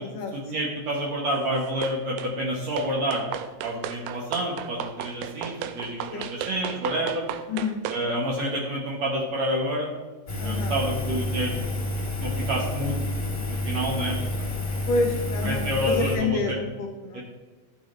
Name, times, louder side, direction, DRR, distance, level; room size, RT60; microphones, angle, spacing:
voice 1, 0.3-7.2 7.9-9.9 10.4-11.5 12.2-13.0 13.5-14.2 15.4-16.6 17.1-17.2, equal, 65° right, -2 dB, 1.8 m, -28 dB
sound 1, 1.8-2.3 2.8-8.1, right 10 dB, 85° right, 2.4 m, -35 dB
voice 2, 7.5-7.8 10.4-10.8 14.9-17.2, left 3 dB, 75° left, 1 dB, 2.0 m, -28 dB
Engine, 10.3-16.2, left 2 dB, 30° left, 0.8 m, -29 dB
13.0 x 6.4 x 3.1 m, 1.3 s
omnidirectional pair, 4.4 m